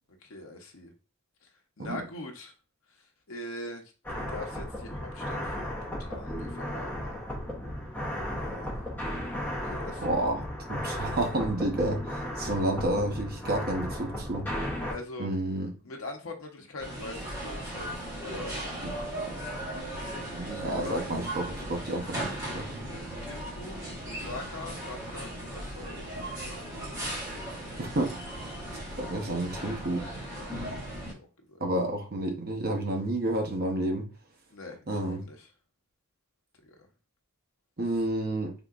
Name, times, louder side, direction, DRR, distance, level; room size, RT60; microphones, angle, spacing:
voice 1, 0.2-0.9 1.4-1.5 1.8-2.5 2.9-7.2 8.3-8.7 9.6-10.1 14.9-15.3 15.8-19.4 20.4-21.1 22.9-26.7 30.3-30.6 31.1-31.6 34.5-35.5 36.6-36.8 37.9-38.0, left 2 dB, 70° left, 3 dB, 0.7 m, -43 dB
sound 1, 4.0-14.9, equal, 10° left, 0.7 m, -35 dB
voice 2, 10.0-10.4 10.7-14.5 15.2-15.7 18.8-18.9 20.3-22.8 27.8-28.1 29.0-30.0 31.6-34.1 34.9-35.2 37.8-38.5, right 1 dB, 45° right, 2 dB, 0.7 m, -30 dB
sound 2, 16.8-31.1, right 1 dB, 15° right, 1.1 m, -37 dB
3.6 x 2.8 x 2.4 m, 0.33 s
head